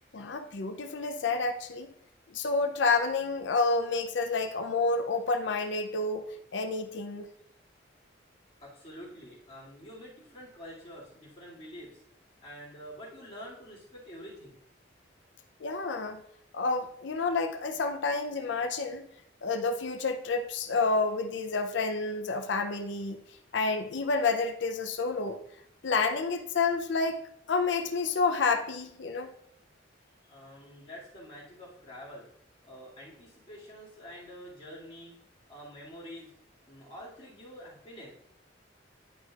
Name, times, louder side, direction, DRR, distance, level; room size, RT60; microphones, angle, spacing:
voice 1, 0.1-1.9 2.3-7.3 15.6-16.2 16.5-19.1 19.4-23.2 23.5-25.4 25.8-27.2 27.5-29.3, left 4 dB, 70° left, 0.5 m, -29 dB
voice 2, 8.6-12.0 12.4-14.6 30.2-32.3 32.6-35.2 35.5-36.3 36.7-38.1, equal, 30° left, 2.3 m, -47 dB
11.0 x 4.9 x 2.4 m
head